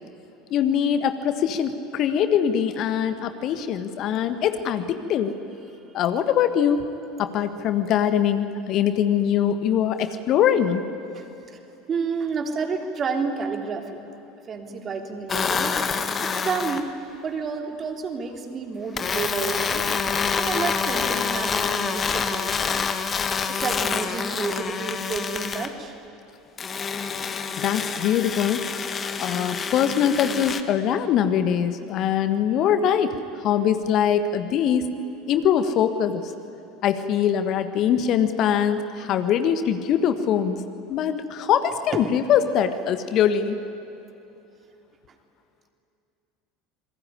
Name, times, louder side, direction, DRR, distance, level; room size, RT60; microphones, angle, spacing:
voice 1, 0.5-5.3 5.9-6.8 7.2-10.8 27.6-28.8 29.2-34.9 35.3-36.2 36.8-40.6 40.9-43.6, left 9 dB, 45° left, 10 dB, 1.5 m, -22 dB
voice 2, 11.9-14.0 14.5-15.8 16.2-16.9 17.2-19.8 20.4-22.9 23.5-25.9 41.9-42.0, right 5 dB, 35° right, 4 dB, 3.3 m, -30 dB
sound 1, 15.3-16.9 19.0-25.7 26.6-30.6, left 6 dB, 30° left, 1.6 m, -27 dB
28.0 x 21.0 x 10.0 m, 2.9 s
figure-of-eight pair, 70°, 0 cm